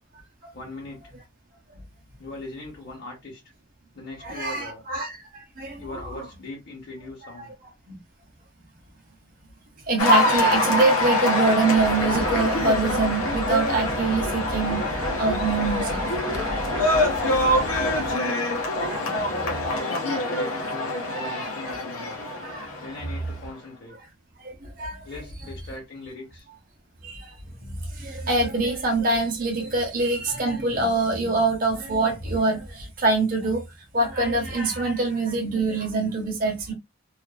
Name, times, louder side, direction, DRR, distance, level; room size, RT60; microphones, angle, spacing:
voice 1, 0.5-1.1 2.2-3.4 3.9-4.9 5.8-7.5 19.1-22.3 22.8-24.0 25.0-26.5, left 2 dB, 50° left, 0.9 m, -40 dB
voice 2, 4.2-5.3 5.6-6.0 7.9-8.0 9.9-14.8 15.2-16.0 16.3-16.4 16.8-17.0 18.0-18.2 18.8-19.3 21.3-21.8 22.3-22.7 24.4-25.0 27.0-27.3 27.6-33.6 33.9-36.7, right 3 dB, 40° right, 0.7 m, -25 dB
Cheering / Applause, 10.0-23.4, left 1 dB, 85° left, 0.7 m, -25 dB
sound 1, 11.7-18.2, right 2 dB, 90° right, 0.7 m, -34 dB
2.4 x 2.4 x 2.3 m
head